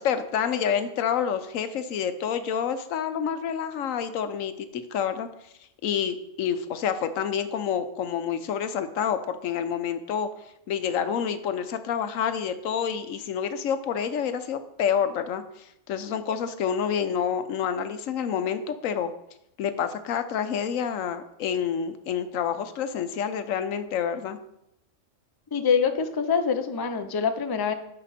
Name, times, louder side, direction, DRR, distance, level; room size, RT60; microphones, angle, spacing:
voice 1, 0.0-5.3 5.8-10.3 10.7-15.4 15.9-19.1 19.6-24.4, left 8 dB, 90° left, 10 dB, 1.1 m, -28 dB
voice 2, 25.5-27.7, left 6 dB, 35° left, 8 dB, 0.4 m, -25 dB
11.0 x 5.1 x 4.2 m, 0.81 s
omnidirectional pair, 1.3 m